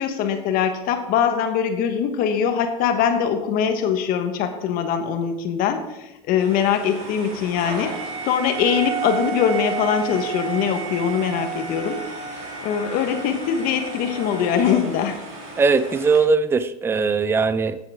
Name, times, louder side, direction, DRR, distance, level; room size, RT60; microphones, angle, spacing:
voice 1, 0.0-12.0 12.6-15.2, left 8 dB, 55° left, 7 dB, 1.3 m, -22 dB
sound 1, 6.4-16.2, right 6 dB, 65° right, 3.4 m, -32 dB
voice 2, 15.6-17.8, right 4 dB, 15° right, 13 dB, 0.5 m, -19 dB
12.5 x 7.8 x 3.6 m, 0.94 s
supercardioid pair, 110°, 18 cm